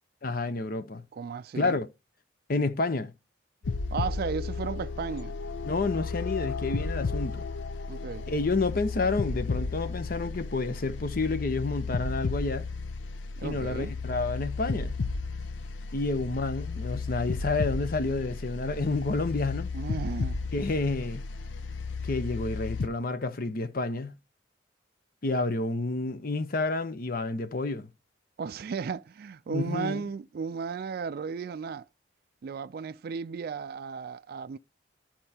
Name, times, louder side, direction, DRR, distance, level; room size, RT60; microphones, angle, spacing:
voice 1, 0.2-1.0 1.6-1.9 2.5-3.1 5.6-7.4 8.3-12.7 13.4-14.9 15.9-19.7 20.5-21.2 22.0-24.2 25.2-27.9 29.5-30.0, left 3 dB, 50° left, 0.7 m, -29 dB
voice 2, 1.1-1.8 3.9-5.3 7.9-8.3 13.4-13.9 19.7-20.4 28.4-31.9 32.4-34.6, right 5 dB, 55° right, 0.3 m, -35 dB
sound 1, 3.6-22.9, left 4 dB, 85° left, 0.6 m, -33 dB
13.0 x 4.4 x 2.8 m
head